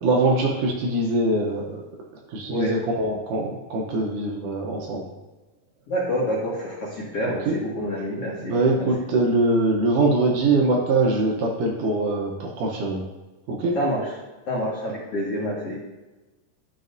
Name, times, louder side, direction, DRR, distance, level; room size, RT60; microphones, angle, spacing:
voice 1, 0.0-1.8 2.3-5.0 7.2-7.6 8.4-13.0 13.5-13.8, right 2 dB, 70° right, 0 dB, 2.2 m, -23 dB
voice 2, 5.9-8.6 13.7-14.0 14.5-15.8, equal, 55° left, -6 dB, 1.9 m, -27 dB
12.0 x 5.2 x 2.6 m, 1.1 s
omnidirectional pair, 4.2 m